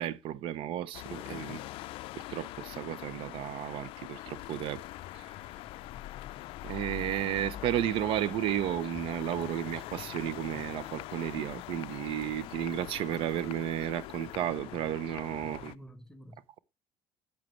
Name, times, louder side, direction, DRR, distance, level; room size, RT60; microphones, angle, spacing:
voice 1, 0.0-1.6 2.2-4.8 5.1-5.3 6.6-15.7, right 11 dB, 65° right, 0.7 m, -33 dB
sound 1, 0.9-15.8, left 17 dB, 65° left, 0.4 m, -43 dB
sound 2, 2.3-14.5, left 10 dB, 35° left, 0.8 m, -50 dB
voice 2, 15.4-16.6, equal, 5° left, 1.0 m, -51 dB
11.5 x 8.2 x 3.1 m
cardioid pair, 150°, 10 cm